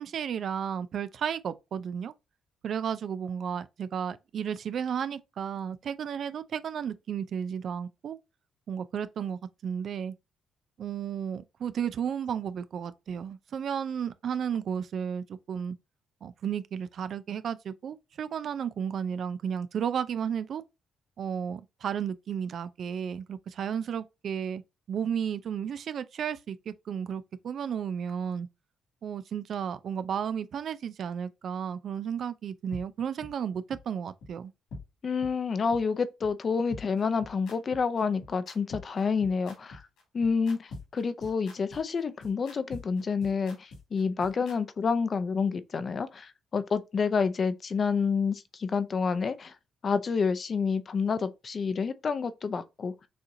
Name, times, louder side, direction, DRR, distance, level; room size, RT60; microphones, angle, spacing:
voice 1, 0.0-2.1 2.6-8.2 8.7-10.1 10.8-15.8 16.2-20.6 21.2-24.6 24.9-28.5 29.0-34.5, right 8 dB, 60° right, 0.4 m, -33 dB
sound 1, 32.7-32.8 33.2-33.3 33.7-33.8 34.2-34.3 34.7-34.8 35.2-35.3 35.7-35.8 36.2-36.3 36.7-44.6, left 2 dB, 85° left, 2.5 m, -44 dB
voice 2, 35.0-39.8 40.1-49.5 49.8-52.9, left 5 dB, 45° left, 0.6 m, -28 dB
6.3 x 2.9 x 2.7 m
cardioid pair, 90°, 0 cm